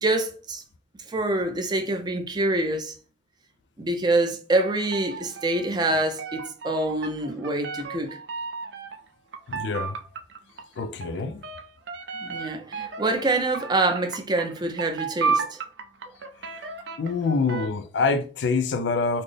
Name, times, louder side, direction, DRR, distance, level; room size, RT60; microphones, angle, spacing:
voice 1, 0.0-0.6 1.1-2.9 3.8-8.2 12.2-15.6, right 2 dB, 25° right, 0.5 m, -26 dB
sound 1, 4.5-9.1 9.3-17.7, right 4 dB, 80° right, 0.5 m, -33 dB
voice 2, 9.5-10.0 10.8-11.4 16.5-16.6 17.0-19.2, left 4 dB, 85° left, 0.4 m, -26 dB
4.1 x 2.1 x 3.3 m
head